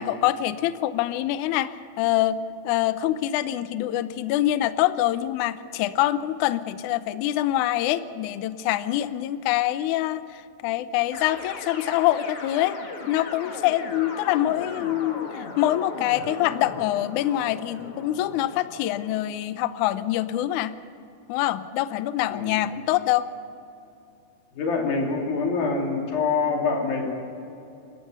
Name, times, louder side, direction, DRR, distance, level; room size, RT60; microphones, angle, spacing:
voice 1, 0.0-2.4 2.6-12.8 13.1-20.7 21.3-23.3, left 14 dB, 90° left, 13 dB, 1.7 m, -25 dB
sound 1, 11.1-19.2, left 3 dB, 45° left, 2.0 m, -38 dB
voice 2, 24.5-27.1, left 4 dB, 70° left, 0 dB, 4.7 m, -25 dB
28.5 x 14.5 x 6.8 m, 2.7 s
omnidirectional pair, 4.4 m